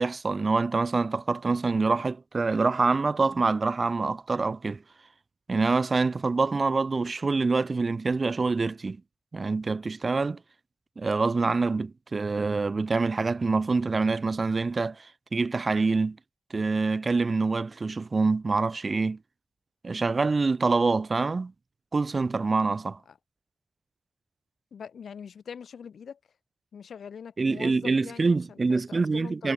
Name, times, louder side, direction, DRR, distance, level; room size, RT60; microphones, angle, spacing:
voice 1, 0.0-4.8 5.5-9.0 9.3-10.4 11.0-16.2 16.5-19.2 19.8-21.5 21.9-23.0 27.4-29.5, right 3 dB, 40° right, 0.9 m, -26 dB
voice 2, 24.7-26.2 26.7-29.5, left 7 dB, 70° left, 4.1 m, -43 dB
cardioid pair, 70°, 0 cm